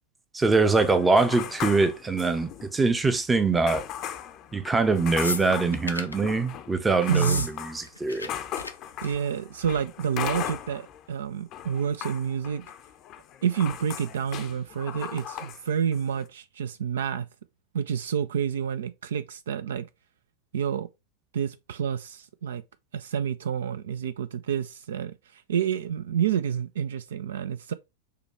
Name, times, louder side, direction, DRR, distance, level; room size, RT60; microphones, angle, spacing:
voice 1, 0.3-3.8 4.5-8.3, right 3 dB, 10° right, 0.6 m, -23 dB
sound 1, 0.8-2.8 3.1-3.2 3.7-11.0 11.3-15.6 15.9-16.3, left 10 dB, 35° left, 0.6 m, -38 dB
sound 2, 5.2-6.2 7.1-7.5 7.8-8.3 8.5-8.7 9.0-9.3 10.3-10.4, left 3 dB, 80° left, 0.5 m, -33 dB
voice 2, 7.1-7.5 9.0-12.7 13.4-17.3 17.7-19.9 20.5-20.9 21.3-22.6 22.9-27.7, right 8 dB, 60° right, 0.3 m, -29 dB
6.7 x 2.2 x 3.2 m
figure-of-eight pair, 90°, 0 cm